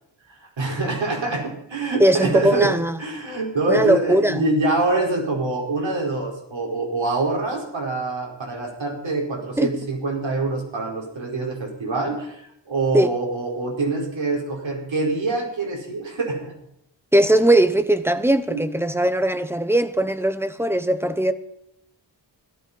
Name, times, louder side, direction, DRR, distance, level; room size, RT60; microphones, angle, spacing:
voice 1, 0.3-2.7 3.0-16.5 18.5-18.6, right 2 dB, 85° right, 5.1 m, -25 dB
voice 2, 2.0-3.0 3.7-4.5 9.6-9.7 12.9-13.1 17.1-21.3, right 1 dB, 5° right, 0.8 m, -19 dB
17.0 x 13.0 x 5.4 m
wide cardioid pair, 175°, 45 cm